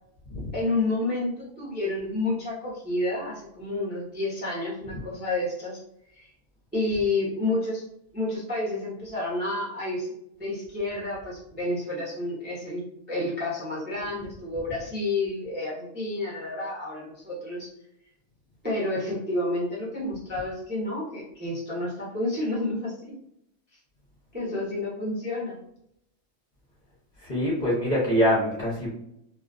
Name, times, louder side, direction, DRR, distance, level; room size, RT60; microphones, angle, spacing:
voice 1, 0.5-5.8 6.1-6.3 6.7-7.8 8.1-10.1 10.4-12.8 13.1-17.7 18.6-23.1 24.3-25.6, left 2 dB, 15° right, -6 dB, 0.4 m, -30 dB
voice 2, 27.2-28.9, equal, 45° left, -6 dB, 0.6 m, -24 dB
2.3 x 2.2 x 2.4 m, 0.77 s
omnidirectional pair, 1.5 m